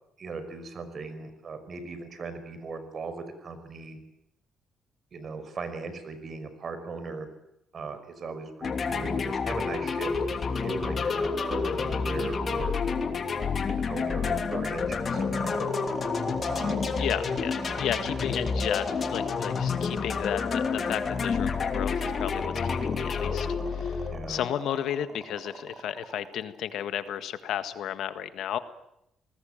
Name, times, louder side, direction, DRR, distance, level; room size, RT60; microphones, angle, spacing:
voice 1, 0.2-4.0 5.1-7.3 7.7-12.8 13.7-15.7 16.5-17.0 24.1-24.4, right 4 dB, 50° right, 11 dB, 5.3 m, -38 dB
sound 1, 8.6-24.5, left 5 dB, 45° left, 2.9 m, -29 dB
sound 2, 15.1-27.4, right 2 dB, 25° right, 5.8 m, -40 dB
voice 2, 17.0-28.6, left 10 dB, 75° left, 11 dB, 1.7 m, -33 dB
26.5 x 20.0 x 9.0 m, 0.83 s
cardioid pair, 90°, 0 cm